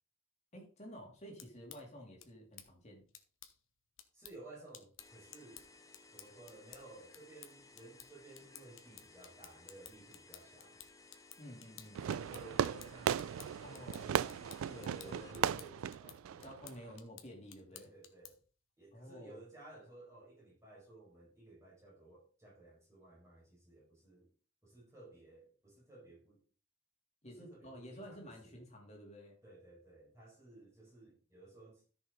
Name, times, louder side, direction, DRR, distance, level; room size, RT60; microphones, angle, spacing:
voice 1, 0.5-3.0 11.4-12.0 13.6-14.4 14.7-15.3 16.4-17.9 18.9-19.4 27.2-29.4, equal, 30° left, 3.0 m, -51 dB
sound 1, 1.2-18.5, left 11 dB, 75° left, 1.3 m, -57 dB
voice 2, 4.1-5.7 6.1-10.8 12.0-16.5 17.7-18.4 18.8-24.3 24.6-26.4 27.2-28.6 29.4-31.8, right 2 dB, 15° right, 5.3 m, -56 dB
sound 2, 5.0-15.3, left 3 dB, 15° left, 0.9 m, -60 dB
Fireworks, 11.9-17.0, right 8 dB, 90° right, 0.3 m, -37 dB
13.5 x 6.4 x 3.9 m
head